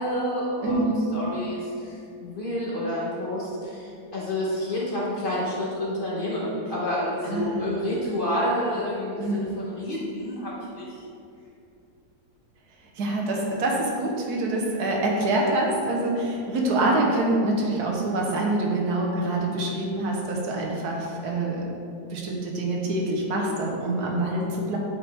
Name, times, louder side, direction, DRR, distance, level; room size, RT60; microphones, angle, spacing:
voice 1, 0.0-0.8 1.1-11.0, left 1 dB, 40° left, -6 dB, 1.0 m, -29 dB
voice 2, 0.6-1.1 7.3-7.7 9.2-9.4 13.0-21.7 22.1-24.8, right 2 dB, 75° right, -1 dB, 1.5 m, -25 dB
8.0 x 4.4 x 3.4 m, 2.5 s
omnidirectional pair, 1.7 m